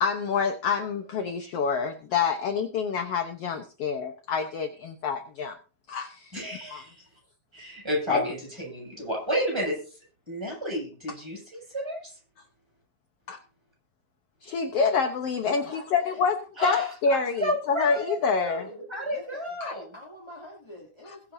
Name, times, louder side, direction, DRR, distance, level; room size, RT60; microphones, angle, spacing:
voice 1, 0.0-5.6 5.9-6.3 6.7-6.8 8.1-8.3 13.3-13.4 14.4-16.3 16.6-18.7 19.6-19.7, left 5 dB, 65° left, 5 dB, 1.5 m, -27 dB
voice 2, 6.3-7.0 7.5-9.8 10.3-12.1 16.6-19.8, equal, 5° right, -2 dB, 7.1 m, -31 dB
voice 3, 15.4-16.2 19.0-19.5 19.9-21.3, left 1 dB, 10° left, -4 dB, 2.3 m, -45 dB
21.5 x 7.3 x 2.7 m, 0.38 s
omnidirectional pair, 4.0 m